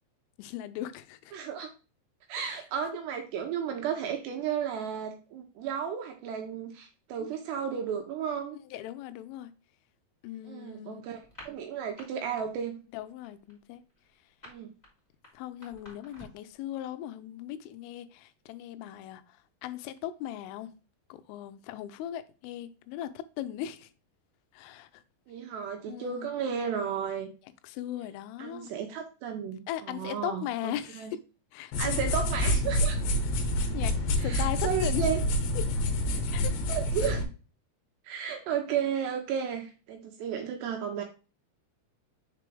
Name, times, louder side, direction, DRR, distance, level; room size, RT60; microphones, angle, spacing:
voice 1, 0.4-1.3 2.4-2.6 7.2-7.3 8.7-9.5 10.2-11.0 12.9-13.8 15.3-20.7 21.1-23.9 24.5-25.0 25.9-26.3 27.6-28.7 29.7-31.2 31.5-32.1 33.7-35.1 35.6-35.7 36.3-36.5, left 12 dB, 90° left, 3.2 m, -38 dB
voice 2, 1.3-1.7 2.3-8.6 10.4-12.8 14.4-14.7 25.3-27.3 28.4-31.1 31.8-33.0 34.2-35.2 36.7-37.3 38.0-41.0, right 7 dB, 75° right, 2.6 m, -33 dB
sound 1, 11.2-12.1 12.4-12.7 13.0-16.5, left 1 dB, 15° left, 1.6 m, -51 dB
sound 2, 31.7-37.2, equal, 75° left, 3.0 m, -28 dB
6.8 x 4.5 x 3.3 m
omnidirectional pair, 5.6 m